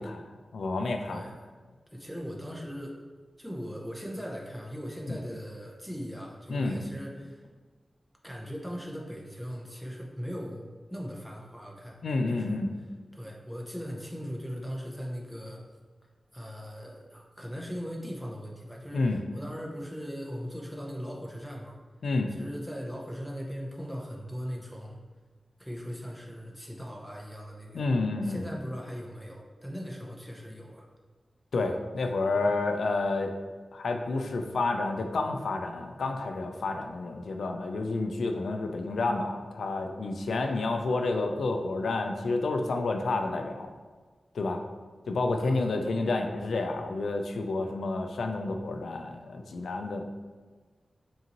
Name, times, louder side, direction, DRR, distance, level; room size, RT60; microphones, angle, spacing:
voice 1, 0.0-1.3 5.1-5.2 6.5-6.8 12.0-12.7 18.9-19.2 22.0-22.3 27.7-28.4 31.5-33.3 33.7-43.7 44.3-44.6 45.1-50.1, left 3 dB, 90° left, 5 dB, 0.4 m, -30 dB
voice 2, 1.9-3.0 3.4-7.4 8.2-12.0 12.3-12.6 13.1-15.6 16.3-21.8 22.3-25.0 25.6-27.9 28.2-30.9 45.4-45.8, equal, ahead, -1 dB, 0.6 m, -39 dB
5.5 x 2.6 x 2.9 m, 1.4 s
wide cardioid pair, 95°, 0 cm